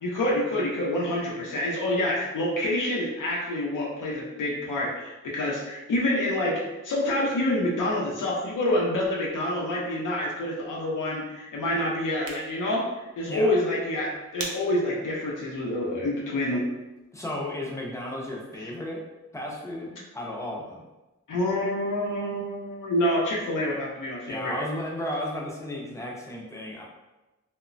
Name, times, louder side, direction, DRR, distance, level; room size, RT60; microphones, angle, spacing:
voice 1, 0.0-12.8 13.2-16.6 21.3-24.6, left 1 dB, 85° left, -4 dB, 0.6 m, -27 dB
sound 1, 12.0-17.1, right 2 dB, 50° right, 0.5 m, -44 dB
voice 2, 17.1-19.0 19.3-20.8 24.3-26.8, left 1 dB, 10° left, -2 dB, 0.4 m, -34 dB
2.9 x 2.1 x 2.5 m, 1.1 s
wide cardioid pair, 165°, 31 cm